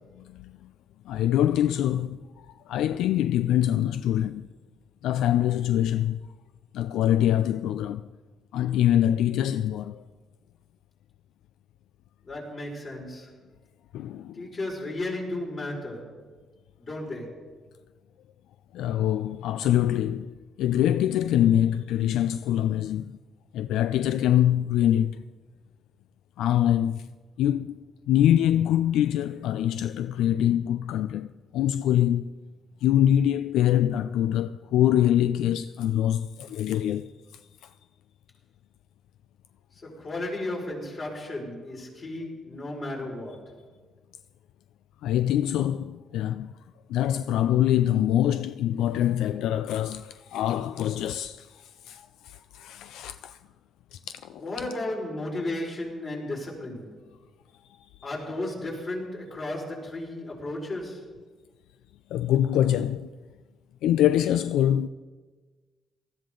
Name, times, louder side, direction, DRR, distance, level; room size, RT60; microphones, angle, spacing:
voice 1, 0.1-0.7 1.1-4.5 5.0-6.2 6.7-8.1 8.5-10.0 13.9-14.5 18.7-23.1 23.5-25.2 26.4-27.1 27.4-32.4 32.8-37.1 37.6-37.7 45.0-46.5 46.9-53.4 53.9-54.4 62.1-63.1 63.8-64.9, left 11 dB, 85° left, 0.3 m, -24 dB
voice 2, 12.2-13.4 14.3-16.2 16.8-17.5 39.7-43.6 54.4-56.9 58.0-61.1, left 1 dB, 45° left, 5.0 m, -34 dB
18.5 x 13.5 x 3.9 m
cardioid pair, 90°, 0 cm